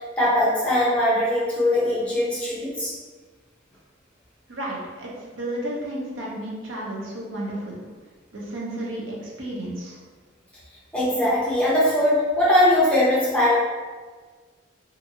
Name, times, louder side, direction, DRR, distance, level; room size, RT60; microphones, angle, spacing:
voice 1, 0.2-2.9 10.9-13.6, left 1 dB, 5° left, -8 dB, 0.8 m, -20 dB
voice 2, 4.5-7.8 8.3-10.0, right 1 dB, 90° right, -4 dB, 0.7 m, -32 dB
2.6 x 2.6 x 2.7 m, 1.4 s
head